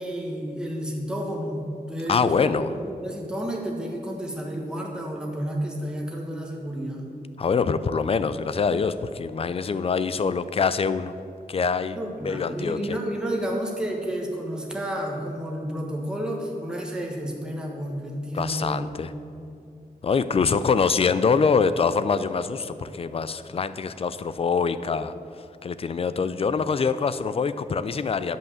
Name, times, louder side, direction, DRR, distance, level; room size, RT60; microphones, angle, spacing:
voice 1, 0.0-2.5 3.0-7.0 11.9-18.8, equal, 5° right, -1 dB, 1.3 m, -31 dB
voice 2, 2.1-2.7 7.4-11.1 11.5-12.0 12.2-13.0 18.3-19.1 20.0-25.1 25.6-28.4, left 5 dB, 40° left, 13 dB, 0.4 m, -24 dB
10.5 x 5.6 x 7.1 m, 2.5 s
wide cardioid pair, 170°, 16 cm